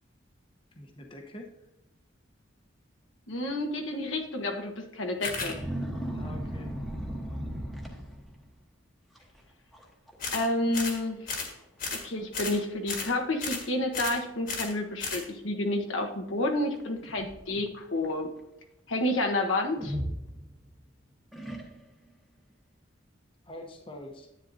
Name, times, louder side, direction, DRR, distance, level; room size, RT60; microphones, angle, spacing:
voice 1, 0.7-1.5 6.1-6.8 23.4-24.3, left 1 dB, 25° left, 3 dB, 0.9 m, -45 dB
voice 2, 3.3-5.6 10.3-11.3 11.9-18.3 18.9-20.0, left 1 dB, 85° left, 2 dB, 1.2 m, -30 dB
sound 1, 5.2-5.5 10.2-10.5 10.7-11.0 11.3-11.5 11.8-12.0 12.3-12.6 12.9-13.1 13.4-13.7 13.9-14.2 14.5-14.7 15.0-15.3, left 4 dB, 45° left, 1.5 m, -34 dB
sound 2, 5.2-8.5 9.2-9.4 9.7-10.2 10.4-10.5 11.3-11.4 11.9-12.0 12.5-13.0 13.8-13.9 16.7-17.7 19.8-20.8 21.3-22.1, equal, ahead, 1.1 m, -37 dB
10.0 x 8.8 x 2.7 m, 0.90 s
head